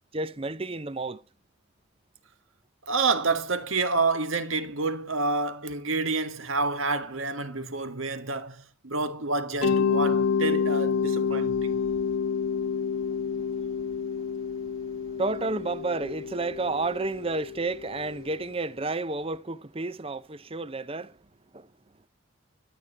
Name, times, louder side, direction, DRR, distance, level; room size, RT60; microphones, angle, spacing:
voice 1, 0.1-1.2 11.8-21.2 21.5-21.7, right 3 dB, 25° right, 0.7 m, -32 dB
voice 2, 2.9-11.8, right 3 dB, 75° right, 1.6 m, -28 dB
Mallet percussion, 9.6-18.4, left 6 dB, 85° left, 1.2 m, -28 dB
13.0 x 9.2 x 8.8 m
head